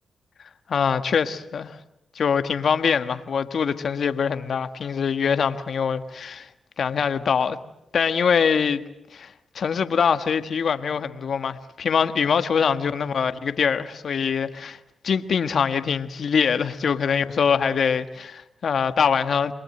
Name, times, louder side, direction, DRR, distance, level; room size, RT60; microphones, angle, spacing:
voice 1, 0.7-1.8 2.1-6.5 6.8-7.6 7.9-8.8 9.1-14.8 15.0-19.5, left 6 dB, 70° left, 1.5 m, -23 dB
28.5 x 22.5 x 7.9 m
cardioid pair, 65°, 0 cm